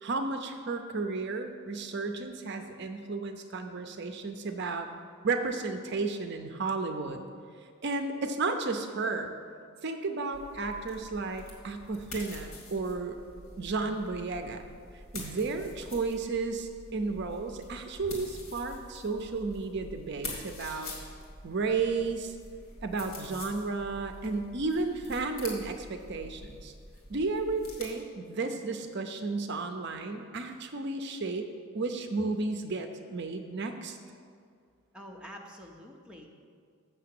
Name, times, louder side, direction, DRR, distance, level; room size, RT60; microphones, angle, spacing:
voice 1, 0.0-4.9 5.2-7.2 7.8-9.3 9.8-13.2 13.6-14.6 15.1-20.9 21.4-22.3 22.8-26.7 27.1-31.5 31.7-34.0, right 3 dB, 50° right, 7 dB, 0.6 m, -33 dB
sound 1, 10.3-27.9, left 2 dB, 75° left, 2.2 m, -46 dB
voice 2, 34.9-36.3, equal, 5° right, 0 dB, 0.7 m, -47 dB
6.9 x 6.6 x 7.6 m, 2.2 s
head